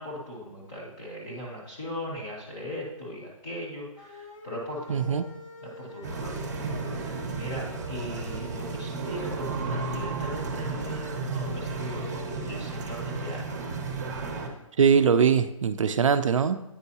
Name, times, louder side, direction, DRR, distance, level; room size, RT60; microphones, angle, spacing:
voice 1, 0.0-5.3 5.6-6.5 6.9-13.4, equal, 10° left, -4 dB, 0.5 m, -38 dB
sound 1, 4.0-8.8, left 1 dB, 80° left, 1.3 m, -47 dB
voice 2, 4.9-5.3 14.8-16.6, right 6 dB, 65° right, 12 dB, 0.4 m, -21 dB
sound 2, 6.0-14.5, right 3 dB, 30° right, 0.7 m, -33 dB
8.8 x 4.5 x 2.8 m, 0.90 s
hypercardioid pair, 175°, 18 cm